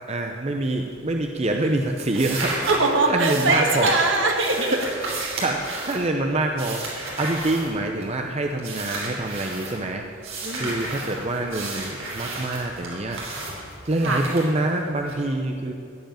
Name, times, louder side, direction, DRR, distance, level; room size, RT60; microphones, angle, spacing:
voice 1, 0.1-2.6 3.1-4.0 4.6-4.8 5.1-10.1 10.6-13.2 13.8-15.7, right 2 dB, 30° right, 3 dB, 0.6 m, -26 dB
sound 1, 0.8-1.2 1.5-8.2 8.6-9.8 10.2-15.1, right 2 dB, 85° right, 3.2 m, -33 dB
voice 2, 2.7-4.8 10.4-10.9 14.0-14.2, right 3 dB, 65° right, 2 dB, 1.6 m, -22 dB
15.0 x 5.0 x 9.1 m, 2.4 s
head